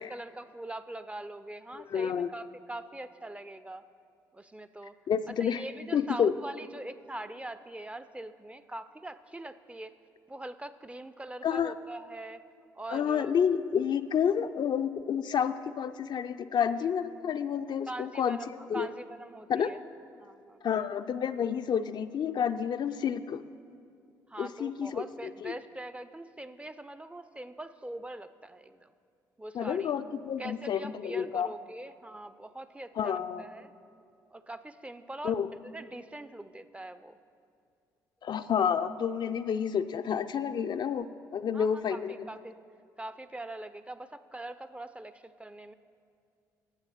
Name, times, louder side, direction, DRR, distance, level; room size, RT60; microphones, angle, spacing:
voice 1, 0.0-3.9 4.3-5.0 5.3-9.9 10.3-12.4 12.7-13.3 17.9-19.8 20.2-20.9 24.3-28.9 29.4-29.9 30.4-33.7 34.3-37.2 41.5-42.5 43.0-45.7, right 1 dB, 15° right, 13 dB, 0.4 m, -43 dB
voice 2, 1.7-2.3 5.1-5.6 5.9-6.3 11.4-11.7 12.9-18.9 19.5-19.7 20.6-23.4 24.4-25.0 25.4-25.5 29.5-31.5 33.0-33.4 35.2-35.5 38.2-42.1, left 8 dB, 50° left, 10 dB, 0.4 m, -29 dB
9.8 x 7.7 x 5.8 m, 2.4 s
hypercardioid pair, 45°, 10 cm